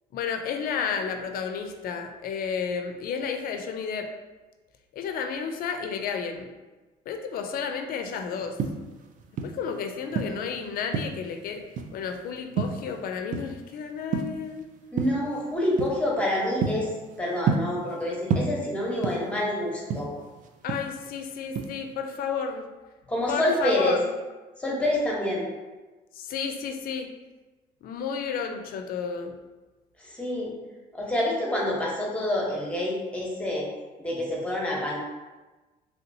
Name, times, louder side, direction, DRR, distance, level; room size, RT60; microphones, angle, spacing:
voice 1, 0.1-4.1 4.9-6.5 7.1-8.6 9.4-11.6 11.9-14.6 20.6-22.7 23.3-24.1 26.1-27.1 27.8-29.3, left 6 dB, 60° left, 6 dB, 0.4 m, -32 dB
sound 1, 8.4-9.7 10.1-11.3 11.8-12.1 12.6-13.7 14.0-14.5 15.0-15.3 15.8-16.0 16.4-18.0 18.3-19.4 19.7-21.2 21.6-21.9, right 5 dB, 50° right, 0.4 m, -29 dB
voice 2, 14.9-16.9 17.2-20.1 23.1-24.0 24.6-25.5 30.0-30.5 30.9-33.7 34.0-35.0, left 1 dB, 5° left, -3 dB, 0.9 m, -27 dB
3.3 x 2.8 x 2.6 m, 1.2 s
cardioid pair, 110°, 17 cm